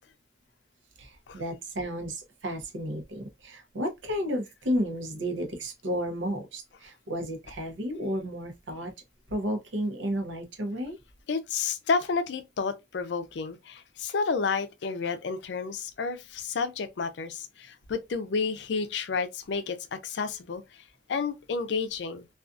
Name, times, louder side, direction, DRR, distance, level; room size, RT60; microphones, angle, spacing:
voice 1, 1.0-8.9 9.3-11.0, equal, 85° right, 0.7 m, -32 dB
voice 2, 11.3-22.3, left 5 dB, 70° left, 0.4 m, -31 dB
2.5 x 2.4 x 2.3 m
head